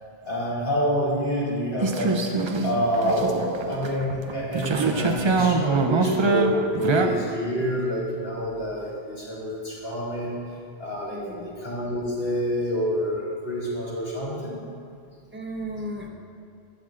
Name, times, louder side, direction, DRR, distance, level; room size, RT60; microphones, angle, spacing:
voice 1, 0.2-10.4 10.8-14.6, equal, 65° left, -7 dB, 2.2 m, -27 dB
sound 1, 1.8-7.1, right 3 dB, 50° right, 0.3 m, -24 dB
voice 2, 11.1-11.5 15.3-16.1, equal, 10° right, -1 dB, 0.7 m, -35 dB
12.0 x 7.7 x 2.4 m, 2.3 s
omnidirectional pair, 1.1 m